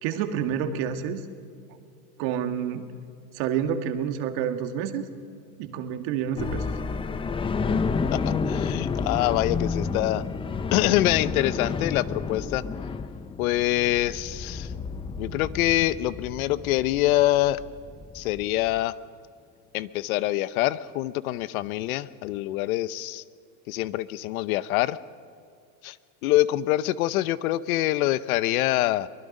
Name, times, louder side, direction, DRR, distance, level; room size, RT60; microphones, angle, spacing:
voice 1, 0.0-1.2 2.2-2.9 3.3-5.0 5.6-6.7, right 8 dB, 55° right, 7 dB, 1.9 m, -28 dB
sound 1, 6.4-18.8, left 5 dB, 10° left, 0.5 m, -30 dB
voice 2, 8.1-10.2 10.7-12.6 13.4-14.7 15.2-17.6 18.1-18.9 19.7-23.2 23.7-25.0 25.8-26.0 26.2-29.1, left 16 dB, 70° left, 17 dB, 0.8 m, -25 dB
24.0 x 20.5 x 5.4 m, 2.3 s
supercardioid pair, 125°, 45 cm